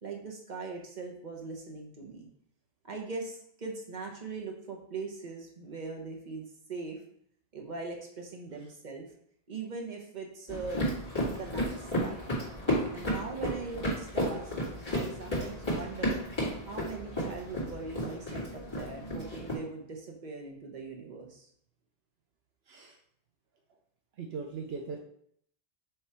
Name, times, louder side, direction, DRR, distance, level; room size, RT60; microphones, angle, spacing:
voice 1, 0.0-2.3 2.8-7.0 7.5-9.1 9.5-10.8 11.3-12.2 12.9-14.5 14.9-16.2 16.7-21.5, right 4 dB, 45° right, 1 dB, 1.2 m, -41 dB
sound 1, 10.5-19.6, equal, 25° left, 2.4 m, -33 dB
voice 2, 22.7-23.0 24.2-25.0, right 4 dB, 75° right, 1 dB, 1.0 m, -39 dB
6.8 x 3.2 x 4.4 m, 0.67 s
omnidirectional pair, 1.0 m